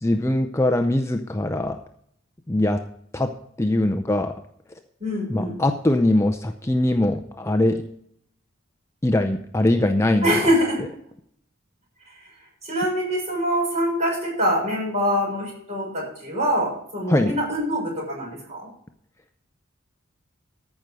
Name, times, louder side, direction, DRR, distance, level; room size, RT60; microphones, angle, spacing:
voice 1, 0.0-1.8 2.5-2.8 3.1-4.4 5.3-7.8 9.0-10.4 17.1-17.3, left 1 dB, 15° left, 6 dB, 0.5 m, -22 dB
voice 2, 5.0-5.5 10.2-10.8 12.6-18.7, equal, 35° right, -2 dB, 6.6 m, -24 dB
14.0 x 6.1 x 6.8 m, 0.69 s
head